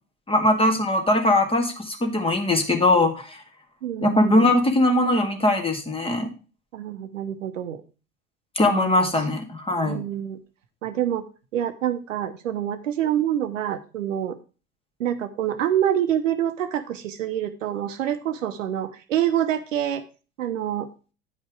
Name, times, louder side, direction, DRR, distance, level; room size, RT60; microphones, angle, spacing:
voice 1, 0.3-3.4 4.0-6.3 8.6-10.0, left 1 dB, 15° left, 4 dB, 1.9 m, -21 dB
voice 2, 3.8-4.5 6.7-7.8 8.6-9.1 9.8-10.4 10.8-11.2 11.5-14.4 15.0-20.0 20.4-20.9, right 10 dB, 70° right, 9 dB, 1.0 m, -26 dB
9.7 x 5.3 x 4.7 m, 0.34 s
figure-of-eight pair, 70°, 40 cm